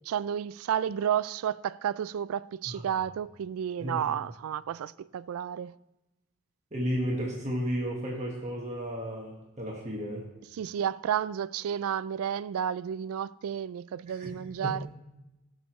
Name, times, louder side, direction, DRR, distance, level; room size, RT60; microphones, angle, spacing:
voice 1, 0.0-5.8 10.5-14.9, right 9 dB, 80° right, 0.3 m, -31 dB
voice 2, 6.7-10.3 14.2-14.8, equal, 30° right, 1.3 m, -33 dB
16.5 x 6.5 x 3.0 m
head